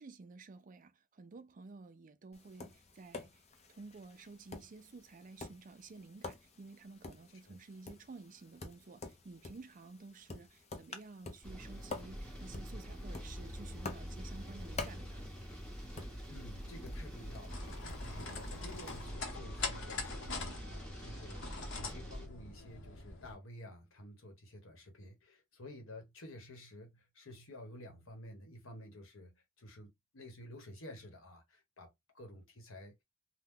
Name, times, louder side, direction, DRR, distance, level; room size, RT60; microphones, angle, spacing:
voice 1, 0.0-3.4 3.7-15.3, right 3 dB, 40° right, 0.4 m, -52 dB
Tap, 2.3-19.1, left 3 dB, 35° left, 0.6 m, -50 dB
sound 1, 11.4-22.3, equal, 5° left, 1.0 m, -45 dB
voice 2, 16.3-33.0, left 1 dB, 85° left, 1.2 m, -52 dB
sound 2, 17.5-23.3, left 3 dB, 65° left, 0.9 m, -43 dB
2.9 x 2.2 x 3.6 m
head